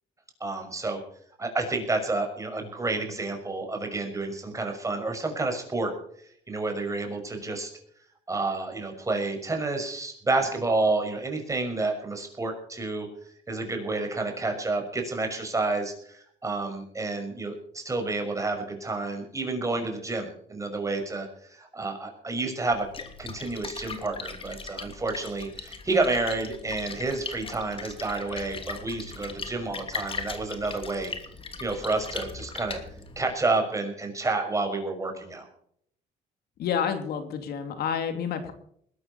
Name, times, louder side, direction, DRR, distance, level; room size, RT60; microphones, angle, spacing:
voice 1, 0.4-1.0 1.4-5.9 6.5-7.7 8.3-13.1 13.5-22.9 23.2-31.1 31.6-32.8 33.2-35.5, right 3 dB, 20° right, 4 dB, 6.1 m, -29 dB
Splash splatter, 22.7-33.3, left 4 dB, 30° left, 2.9 m, -39 dB
voice 2, 36.6-38.5, left 7 dB, 70° left, 7 dB, 3.0 m, -29 dB
21.0 x 12.5 x 4.4 m, 0.65 s
cardioid pair, 110°, 17 cm